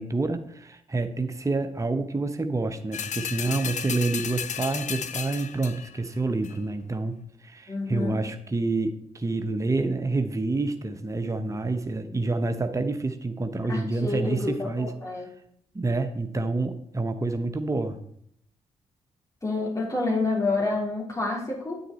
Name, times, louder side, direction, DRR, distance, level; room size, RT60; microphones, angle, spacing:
voice 1, 0.0-15.3 15.7-18.0, right 3 dB, 20° right, 7 dB, 0.9 m, -28 dB
sound 1, 2.9-6.0 6.4-6.5, left 8 dB, 60° left, 0.6 m, -33 dB
voice 2, 7.7-8.2 13.7-15.3 19.4-21.8, left 3 dB, 25° left, -2 dB, 3.8 m, -28 dB
8.8 x 6.6 x 4.2 m, 0.68 s
supercardioid pair, 50°, 14 cm